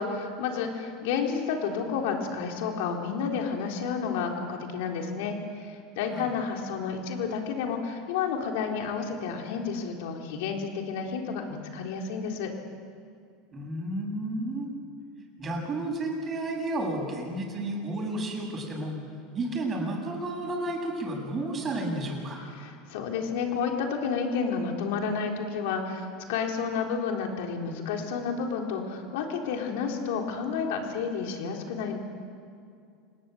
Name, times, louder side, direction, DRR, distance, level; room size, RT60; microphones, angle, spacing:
voice 1, 0.0-12.5 22.5-32.0, left 5 dB, 75° left, 2 dB, 3.9 m, -31 dB
voice 2, 13.5-14.7 15.4-19.0 19.3-22.4, right 1 dB, 30° right, 1 dB, 7.5 m, -32 dB
27.0 x 19.0 x 8.0 m, 2.3 s
supercardioid pair, 105°, 0 cm